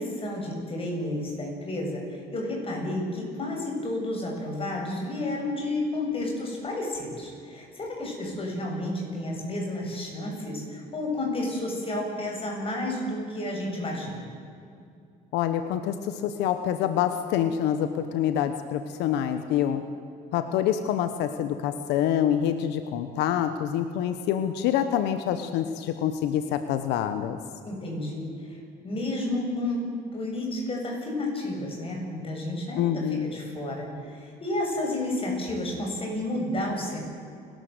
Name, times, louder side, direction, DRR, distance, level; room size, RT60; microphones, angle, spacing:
voice 1, 0.0-14.3 27.6-28.6 28.8-29.9 30.1-37.0, left 1 dB, 35° left, 0 dB, 7.8 m, -31 dB
voice 2, 15.3-19.8 20.3-27.4 32.8-33.3, left 10 dB, 90° left, 9 dB, 1.1 m, -26 dB
29.5 x 13.0 x 8.1 m, 2.5 s
cardioid pair, 110°, 17 cm